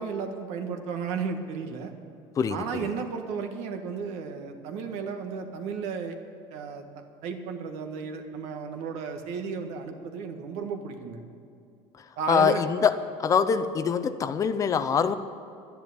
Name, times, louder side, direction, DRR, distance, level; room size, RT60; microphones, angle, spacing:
voice 1, 0.0-1.9 2.5-6.1 6.5-6.8 7.2-11.2 12.2-12.6, right 5 dB, 70° right, 5 dB, 1.6 m, -33 dB
voice 2, 2.4-2.9 12.3-15.1, left 6 dB, 30° left, 11 dB, 0.6 m, -24 dB
12.0 x 10.5 x 8.5 m, 2.5 s
cardioid pair, 140°, 12 cm